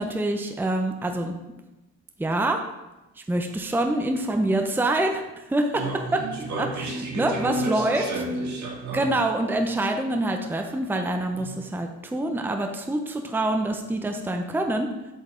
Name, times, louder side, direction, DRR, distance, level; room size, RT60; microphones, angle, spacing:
voice 1, 0.0-1.4 2.2-2.6 3.3-5.2 5.5-5.8 6.1-6.2 6.6-8.1 8.9-14.9, right 1 dB, 5° right, 4 dB, 0.6 m, -25 dB
voice 2, 5.8-9.1 11.4-11.5, right 2 dB, 65° right, -1 dB, 2.1 m, -31 dB
7.9 x 5.2 x 3.8 m, 1.0 s
cardioid pair, 90°, 30 cm